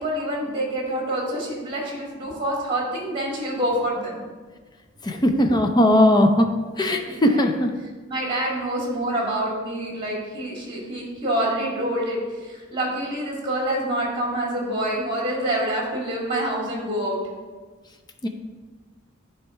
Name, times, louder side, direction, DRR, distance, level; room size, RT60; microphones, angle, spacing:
voice 1, 0.0-4.2 6.9-7.6 8.1-17.2, right 1 dB, 25° right, -3 dB, 2.2 m, -27 dB
voice 2, 5.0-6.5 6.8-7.7 18.2-18.3, left 1 dB, 20° left, 5 dB, 0.5 m, -18 dB
10.0 x 3.5 x 4.4 m, 1.3 s
head